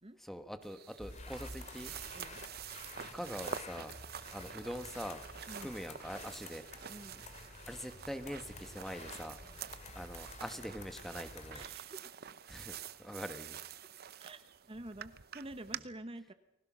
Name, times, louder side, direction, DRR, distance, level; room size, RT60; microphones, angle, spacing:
voice 1, 0.2-1.9 3.1-3.9 4.3-5.2 5.6-6.7 7.7-9.4 9.9-11.7 12.5-13.6, equal, ahead, 8 dB, 1.3 m, -43 dB
sound 1, 0.6-15.8, right 8 dB, 50° right, 0.8 m, -48 dB
sound 2, 1.0-11.7, left 3 dB, 35° left, 2.6 m, -50 dB
voice 2, 6.9-7.2 11.5-12.1 14.2-16.3, right 1 dB, 30° right, 10 dB, 1.1 m, -48 dB
30.0 x 20.5 x 6.2 m, 0.90 s
head